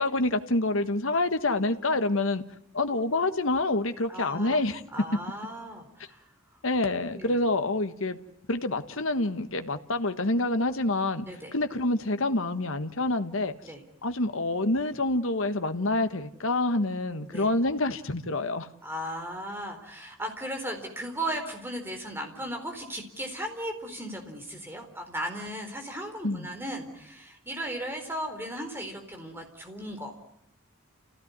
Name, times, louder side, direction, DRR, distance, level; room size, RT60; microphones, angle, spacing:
voice 1, 0.0-2.4 2.7-4.8 6.6-8.2 8.5-11.3 11.5-13.5 14.0-18.7 26.2-26.5, left 2 dB, 75° left, 1.5 m, -27 dB
voice 2, 4.1-4.6 4.9-6.3 7.1-7.4 11.2-11.5 13.6-13.8 17.3-17.5 18.8-30.3, right 1 dB, 10° right, 4.3 m, -36 dB
29.5 x 16.5 x 9.7 m
head